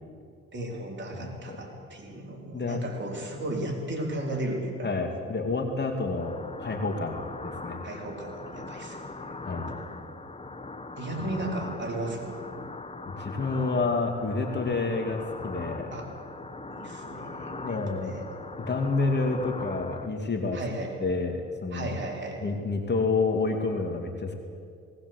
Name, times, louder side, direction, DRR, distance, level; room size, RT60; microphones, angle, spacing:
voice 1, 0.5-4.9 7.8-9.9 11.0-12.4 15.9-16.1 16.7-18.2 20.5-20.9 21.7-22.4, right 1 dB, 40° right, 0 dB, 4.8 m, -35 dB
voice 2, 1.2-1.6 2.5-2.8 4.8-7.8 9.4-9.7 13.1-15.9 17.6-18.2 18.6-20.6 21.0-21.9 22.4-24.3, left 3 dB, 35° left, 4 dB, 2.5 m, -29 dB
sound 1, 6.2-20.1, left 3 dB, 20° left, 1.2 m, -40 dB
19.0 x 18.5 x 8.2 m, 2.3 s
cardioid pair, 90°, 30 cm